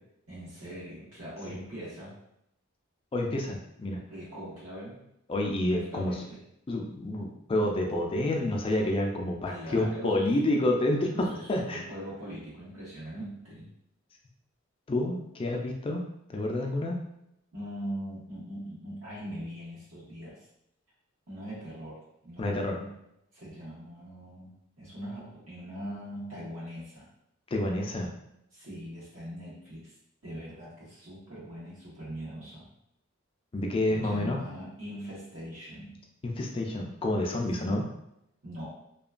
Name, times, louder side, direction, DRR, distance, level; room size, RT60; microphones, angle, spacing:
voice 1, 0.3-2.1 4.1-5.0 5.7-6.4 9.5-10.3 11.1-13.7 17.5-20.5 21.3-23.0 23.3-27.1 28.5-29.9 30.2-32.7 33.9-36.0 37.6-37.8 38.4-38.7, equal, 85° right, -7 dB, 1.3 m, -41 dB
voice 2, 3.1-4.0 5.3-6.1 6.7-11.8 14.9-16.0 16.3-17.0 22.4-22.8 27.5-28.1 33.5-34.4 36.2-37.8, left 1 dB, 25° left, 0 dB, 0.3 m, -28 dB
2.9 x 2.2 x 2.4 m, 0.81 s
head